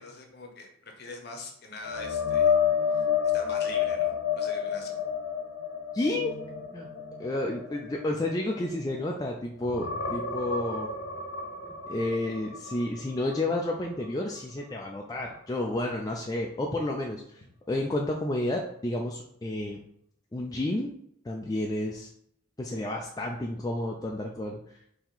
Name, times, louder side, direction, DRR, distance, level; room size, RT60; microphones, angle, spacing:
voice 1, 0.0-2.5 3.3-5.0, left 3 dB, 50° left, 3 dB, 0.8 m, -43 dB
sound 1, 1.8-9.2 9.6-13.5 13.8-14.1 17.4-17.5, left 7 dB, 75° left, 1.0 m, -30 dB
voice 2, 5.9-6.3 6.7-6.9 7.2-10.9 11.9-17.2 17.7-19.8 20.3-20.9 21.3-22.1 22.6-24.6, left 1 dB, 20° left, 0 dB, 0.3 m, -31 dB
4.3 x 2.8 x 3.9 m, 0.69 s
head